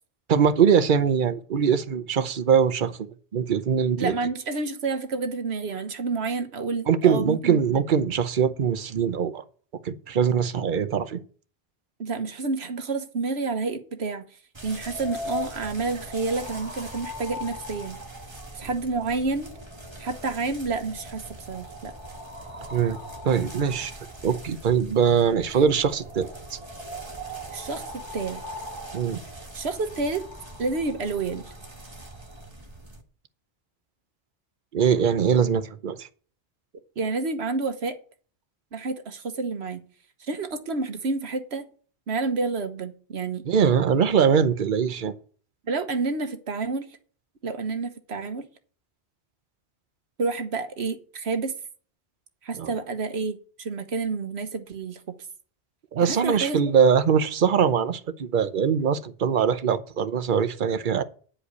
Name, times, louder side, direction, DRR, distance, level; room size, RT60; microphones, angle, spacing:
voice 1, 0.3-3.0 3.3-4.1 6.9-9.4 9.8-11.2 22.7-23.0 23.2-23.9 24.2-26.6 28.9-29.2 34.7-36.1 43.5-45.1 52.6-52.7 55.9-61.0, right 7 dB, 55° right, 0.9 m, -22 dB
voice 2, 4.0-7.8 12.0-14.2 14.6-18.0 18.5-19.5 20.0-21.9 25.5-25.6 27.5-28.4 29.5-30.2 30.6-31.4 37.0-38.0 38.7-39.8 40.3-41.6 42.1-43.4 45.7-46.9 47.4-48.5 50.2-51.6 52.4-55.1 56.0-56.7, right 3 dB, 80° right, 1.4 m, -29 dB
sound 1, 14.5-33.0, equal, 25° right, 1.5 m, -40 dB
10.0 x 5.1 x 8.1 m
omnidirectional pair, 1.1 m